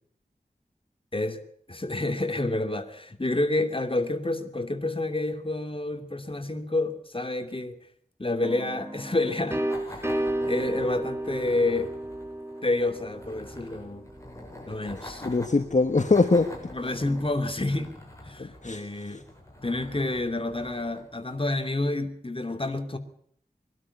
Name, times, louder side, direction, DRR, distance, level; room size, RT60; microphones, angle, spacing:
voice 1, 1.7-7.8 8.2-9.6 9.9-10.0 10.5-11.9 12.6-14.1 14.7-15.3 16.7-18.0 18.2-19.2 19.6-23.0, left 2 dB, 35° left, 7 dB, 2.7 m, -29 dB
sound 1, 8.4-14.1, right 1 dB, 15° right, 2.1 m, -32 dB
sound 2, 9.7-21.9, left 1 dB, 20° left, 6.8 m, -46 dB
voice 2, 15.2-16.6 18.4-19.2, left 3 dB, 50° left, 8 dB, 1.3 m, -23 dB
22.0 x 12.5 x 9.9 m, 0.63 s
wide cardioid pair, 55°, 15 cm